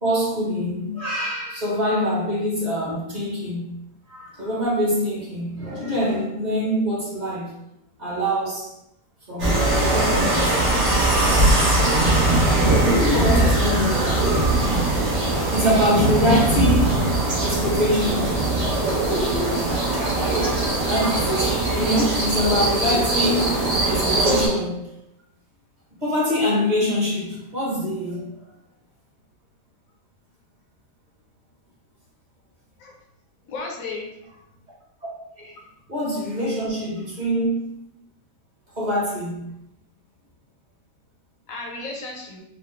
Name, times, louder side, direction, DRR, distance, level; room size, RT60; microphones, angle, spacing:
voice 1, 0.0-3.7 4.1-7.5 8.0-8.7 9.3-10.6 12.8-14.2 14.8-17.1 17.4-18.3 19.9-20.1 20.9-24.9 26.0-28.3 35.4-35.6 35.9-37.6 38.8-39.4, equal, 30° right, -5 dB, 0.9 m, -24 dB
sound 1, 9.4-24.5, right 2 dB, 70° right, 1.8 m, -20 dB
voice 2, 13.1-13.6 32.8-32.9 33.5-34.1 41.5-42.4, left 3 dB, 60° left, -1 dB, 1.0 m, -33 dB
4.7 x 2.1 x 3.2 m, 0.81 s
omnidirectional pair, 1.9 m